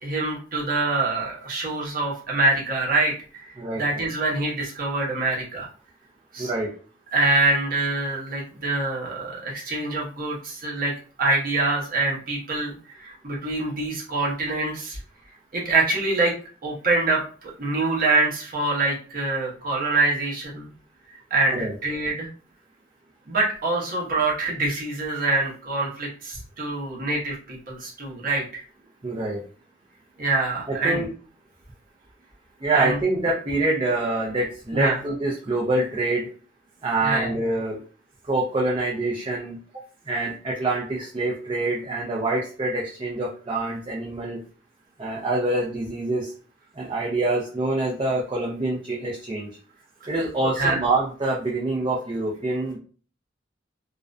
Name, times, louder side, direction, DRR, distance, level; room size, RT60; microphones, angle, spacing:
voice 1, 0.0-3.5 3.7-5.7 6.3-6.5 7.1-10.9 11.2-15.0 15.5-16.3 16.6-20.7 21.1-22.3 23.3-28.6 30.2-31.0 32.7-33.0 34.7-35.0 37.0-37.3 50.6-50.8, right 2 dB, 50° right, -3 dB, 0.8 m, -25 dB
voice 2, 6.4-6.7 21.5-21.7 29.0-29.4 30.7-31.1 32.6-36.3 36.8-37.8 38.3-39.6 40.1-44.4 45.0-46.3 46.8-49.5 50.1-52.8, right 2 dB, 30° right, -4 dB, 0.5 m, -25 dB
2.4 x 2.1 x 2.5 m, 0.40 s
head